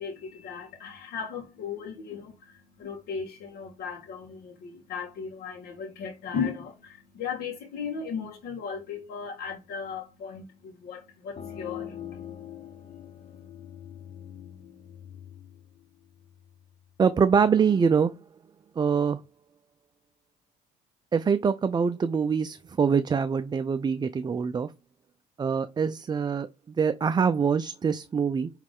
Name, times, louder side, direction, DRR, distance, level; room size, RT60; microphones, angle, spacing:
voice 1, 0.0-13.5, left 6 dB, 70° left, 1.7 m, -37 dB
sound 1, 11.4-16.8, left 9 dB, 35° left, 0.9 m, -43 dB
voice 2, 17.0-18.1 18.8-19.2 21.1-24.7 25.4-28.5, right 6 dB, 25° right, 0.5 m, -24 dB
9.2 x 3.2 x 3.7 m
cardioid pair, 110°, 17 cm